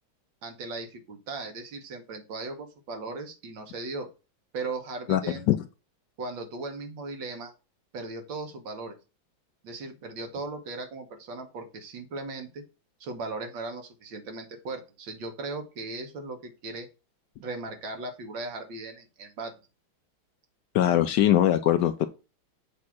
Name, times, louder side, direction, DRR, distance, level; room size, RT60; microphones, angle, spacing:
voice 1, 0.4-4.1 4.5-5.4 6.2-7.5 7.9-9.0 9.6-12.6 13.0-16.9 17.4-19.6, right 3 dB, 70° right, 2.0 m, -37 dB
voice 2, 20.7-22.1, left 12 dB, 75° left, 1.1 m, -21 dB
7.4 x 2.8 x 6.0 m
omnidirectional pair, 2.2 m